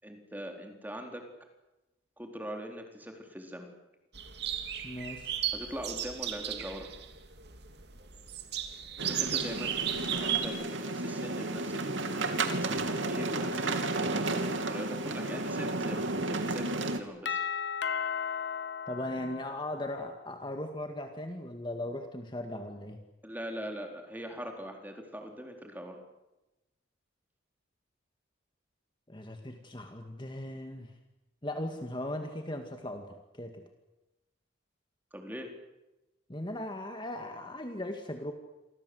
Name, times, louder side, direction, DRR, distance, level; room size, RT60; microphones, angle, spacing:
voice 1, 0.0-1.3 2.2-3.7 5.5-6.9 9.0-9.8 10.2-17.4 23.2-26.0 35.1-35.5, equal, 10° right, 3 dB, 4.0 m, -42 dB
sound 1, 4.1-10.5, right 10 dB, 55° right, 2.9 m, -35 dB
voice 2, 4.8-5.3 18.9-23.0 29.1-30.9 31.4-33.6 36.3-38.3, left 1 dB, 25° left, 5 dB, 2.0 m, -38 dB
sound 2, 9.0-17.0, right 2 dB, 70° right, 2.9 m, -32 dB
Doorbell, 17.3-20.1, left 7 dB, 60° left, 0.9 m, -35 dB
29.0 x 24.5 x 8.0 m, 1.0 s
head